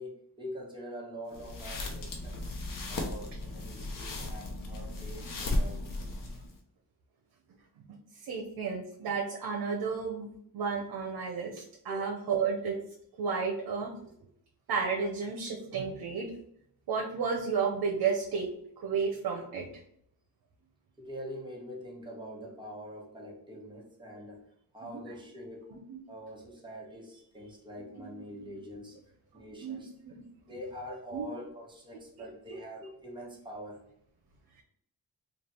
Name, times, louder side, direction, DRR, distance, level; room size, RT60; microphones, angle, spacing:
voice 1, 0.0-2.5 2.9-5.8 11.9-12.1 21.0-24.4 24.7-25.7 26.1-29.0 29.3-29.9 30.5-33.8, equal, 15° right, -3 dB, 1.2 m, -44 dB
sound 1, 1.3-6.6, left 2 dB, 65° left, 0.8 m, -35 dB
voice 2, 8.2-12.8 13.2-13.9 14.7-16.3 16.9-18.5 18.8-19.6 24.8-25.0 25.7-26.0 27.8-28.3 29.6-29.8 30.0-30.1 31.1-31.3, right 5 dB, 85° right, 0 dB, 0.7 m, -32 dB
3.3 x 2.4 x 4.2 m, 0.70 s
cardioid pair, 90°, 36 cm